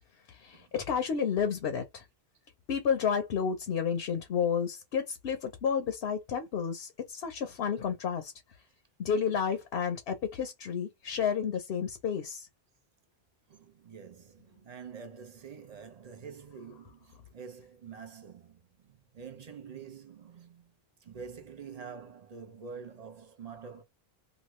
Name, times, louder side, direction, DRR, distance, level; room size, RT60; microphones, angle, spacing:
voice 1, 0.3-2.0 2.7-8.3 9.0-12.5, left 7 dB, 75° left, 0.9 m, -31 dB
voice 2, 13.5-20.7 21.0-23.8, right 6 dB, 45° right, 0.7 m, -47 dB
3.0 x 2.3 x 3.0 m
omnidirectional pair, 1.0 m